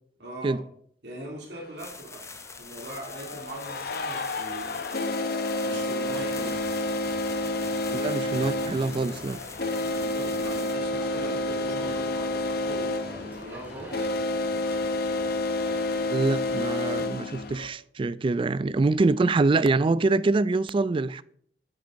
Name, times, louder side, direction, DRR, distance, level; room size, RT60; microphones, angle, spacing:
voice 1, 0.2-0.6 1.0-2.2 2.6-5.1 5.6-6.7 9.8-14.0, right 1 dB, 75° right, 3.0 m, -41 dB
sound 1, 1.5-1.6 2.7-17.7, left 2 dB, 60° left, 0.8 m, -29 dB
sound 2, 1.8-10.8, left 4 dB, 15° left, 0.7 m, -44 dB
sound 3, 6.1-16.6, equal, 10° right, 3.7 m, -46 dB
voice 2, 7.9-9.4 16.1-21.2, right 3 dB, 30° right, 0.3 m, -25 dB
10.0 x 8.1 x 4.0 m
head